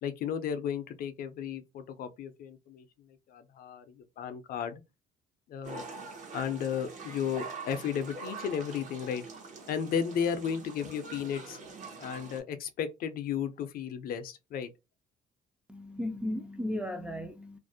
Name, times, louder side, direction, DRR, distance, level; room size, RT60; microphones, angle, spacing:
voice 1, 0.0-2.9 3.3-4.8 5.5-5.9 6.3-9.2 9.7-11.6 12.0-14.7, left 7 dB, 60° left, 0.4 m, -34 dB
sound 1, 5.6-12.4, right 4 dB, 45° right, 0.7 m, -44 dB
voice 2, 15.7-17.6, left 1 dB, 5° right, 0.3 m, -35 dB
2.4 x 2.0 x 2.6 m
cardioid pair, 110°, 17 cm